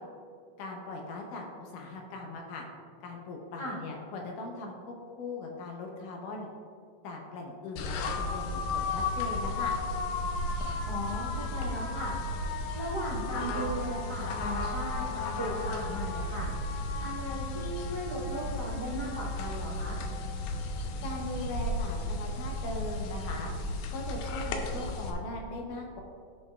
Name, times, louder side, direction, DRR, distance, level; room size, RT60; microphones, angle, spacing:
voice 1, 0.6-2.6 3.0-6.5 7.0-9.8 21.0-23.5 23.9-26.0, left 2 dB, 70° left, 0 dB, 2.1 m, -39 dB
sound 1, 7.8-25.1, left 2 dB, 90° left, 2.5 m, -34 dB
voice 2, 10.9-12.2 12.7-16.5 16.7-20.0, equal, 25° right, -9 dB, 0.8 m, -37 dB
14.5 x 5.1 x 2.4 m, 2.3 s
omnidirectional pair, 4.3 m